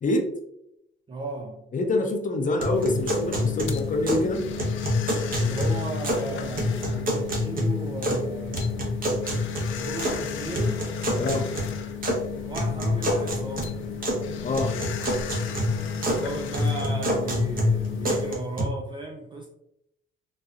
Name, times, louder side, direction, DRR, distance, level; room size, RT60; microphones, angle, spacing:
voice 1, 1.1-1.7 5.3-8.9 9.7-10.8 12.4-13.8 15.9-19.5, right 3 dB, 25° right, 0.4 m, -35 dB
voice 2, 1.7-4.4 11.2-11.5 14.4-14.7, left 2 dB, 40° left, 0.7 m, -25 dB
sound 1, 2.6-4.3 4.6-6.3 6.6-8.3 8.5-10.2 10.5-12.2 12.5-14.2 14.5-16.2 16.5-18.6, left 1 dB, 45° right, 1.0 m, -27 dB
sound 2, 2.7-18.4, left 7 dB, 80° left, 0.5 m, -34 dB
4.1 x 2.3 x 2.4 m
cardioid pair, 90°, 20 cm